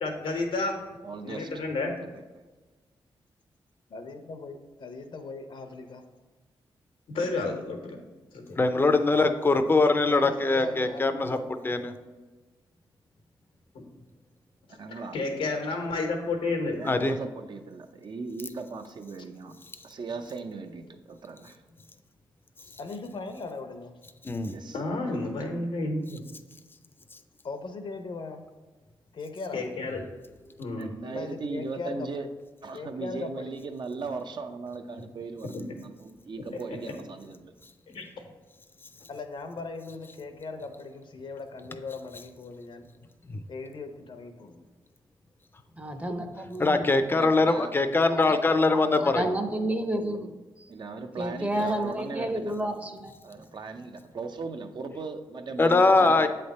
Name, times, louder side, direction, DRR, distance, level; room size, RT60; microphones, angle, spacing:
voice 1, 0.0-0.8 1.2-2.0 7.1-8.0 8.3-8.6 14.9-16.8 24.7-26.2 29.5-30.0 30.6-30.9 36.7-36.8 37.9-38.2, left 2 dB, 90° left, 2 dB, 1.1 m, -31 dB
voice 2, 1.0-1.5 2.0-2.2 14.7-15.2 16.8-19.5 19.8-21.6 24.5-24.8 30.8-32.3 32.6-37.5 47.1-47.7 50.7-52.5 53.2-56.3, right 4 dB, 55° right, 6 dB, 0.6 m, -38 dB
voice 3, 3.9-6.0 10.0-11.5 22.6-23.9 27.4-28.4 29.1-29.7 31.0-32.1 32.7-33.6 39.1-42.9 43.5-44.6 51.5-51.8 55.9-56.3, left 3 dB, 60° left, 7 dB, 0.7 m, -39 dB
voice 4, 8.6-11.4 11.6-11.9 16.8-17.1 24.2-24.5 43.3-43.4 46.6-49.2 55.6-56.3, left 3 dB, 25° left, 8 dB, 0.5 m, -22 dB
voice 5, 45.8-46.9 48.1-48.4 48.7-50.7 51.2-53.1, right 1 dB, 15° right, 7 dB, 0.7 m, -31 dB
7.8 x 3.3 x 4.1 m, 1.3 s
cardioid pair, 70°, 9 cm